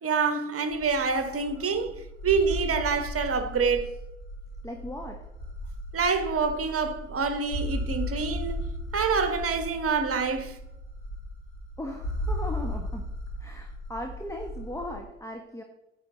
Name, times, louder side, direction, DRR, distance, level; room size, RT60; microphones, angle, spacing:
voice 1, 0.0-1.9 2.2-3.9 5.9-8.7 8.9-10.6, right 5 dB, 35° right, 1.4 m, -26 dB
sound 1, 0.7-15.0, equal, 80° left, 3.0 m, -36 dB
voice 2, 4.6-5.3 11.8-13.0 13.4-15.6, left 1 dB, 10° left, 1.3 m, -38 dB
9.6 x 8.0 x 4.0 m
figure-of-eight pair, 45°, 37 cm